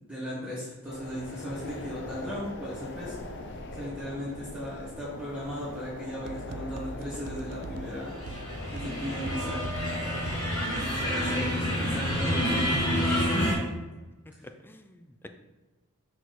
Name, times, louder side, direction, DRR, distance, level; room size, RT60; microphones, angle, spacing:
voice 1, 0.1-3.2 3.7-8.1 8.7-9.6 10.8-13.6 14.4-14.5, equal, 5° right, -11 dB, 1.7 m, -36 dB
sound 1, 0.9-10.3, left 2 dB, 55° left, 0.7 m, -41 dB
sound 2, 6.3-11.2, right 3 dB, 90° right, 0.4 m, -42 dB
sound 3, 8.0-13.5, equal, 75° left, 2.3 m, -28 dB
voice 2, 14.4-15.3, left 1 dB, 10° left, 7 dB, 0.4 m, -49 dB
6.1 x 4.8 x 4.0 m, 1.2 s
head